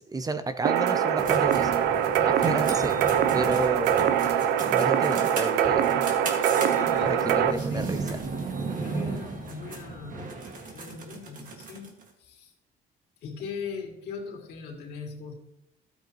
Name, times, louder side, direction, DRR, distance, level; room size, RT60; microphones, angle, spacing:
voice 1, 0.0-1.9 2.2-3.0 3.3-4.1 4.7-6.0 7.0-8.0, right 3 dB, 20° right, 10 dB, 0.7 m, -30 dB
sound 1, 0.7-7.5, right 9 dB, 85° right, 0.6 m, -23 dB
sound 2, 1.2-12.0, right 3 dB, 50° right, 2.0 m, -35 dB
voice 2, 6.6-8.0 8.8-10.4 10.7-11.9 12.2-12.5 13.2-15.3, left 5 dB, 75° left, -1 dB, 2.7 m, -39 dB
13.0 x 8.2 x 3.0 m, 0.82 s
cardioid pair, 110°, 17 cm